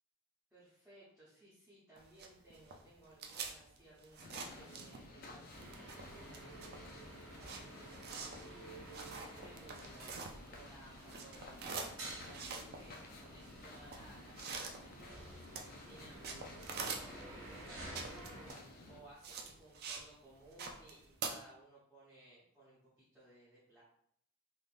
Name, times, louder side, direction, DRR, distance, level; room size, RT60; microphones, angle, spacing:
voice 1, 0.5-16.2 17.0-18.5 18.8-23.8, right 1 dB, 5° right, -11 dB, 0.8 m, -60 dB
sound 1, 2.0-5.3 5.6-10.7 11.0-20.1 20.4-21.3, right 4 dB, 45° right, 0.4 m, -46 dB
sound 2, 4.2-19.0, left 2 dB, 40° left, 0.4 m, -55 dB
sound 3, 5.5-18.5, right 1 dB, 70° right, 1.2 m, -52 dB
3.5 x 2.5 x 2.5 m, 0.70 s
head